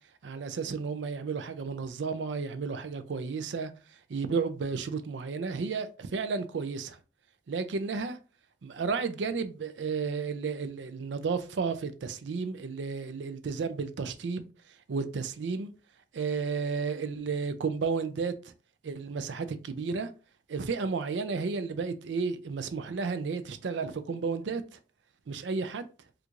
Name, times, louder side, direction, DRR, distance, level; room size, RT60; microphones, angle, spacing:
voice 1, 0.2-3.7 4.1-7.0 7.5-8.2 8.6-14.5 14.9-15.7 16.1-18.3 18.8-20.1 20.5-24.8 25.3-25.9, right 5 dB, 85° right, 0.4 m, -32 dB
4.4 x 2.5 x 2.5 m
head